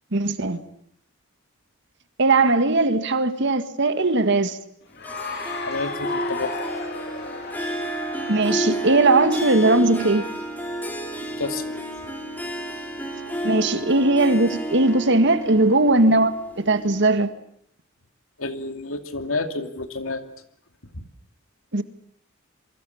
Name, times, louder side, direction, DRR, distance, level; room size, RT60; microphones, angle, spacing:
voice 1, 0.1-0.6 2.2-4.6 8.3-10.2 13.4-17.3 21.7-21.8, right 2 dB, 60° right, 1.9 m, -19 dB
Cheering / Applause, 4.9-10.1, left 4 dB, 55° left, 2.7 m, -35 dB
Harp, 5.0-17.2, right 1 dB, 10° left, 5.2 m, -31 dB
voice 2, 5.7-6.5 11.4-11.7 18.4-20.2 20.9-21.1, left 3 dB, 80° left, 2.7 m, -29 dB
28.0 x 23.5 x 7.3 m
head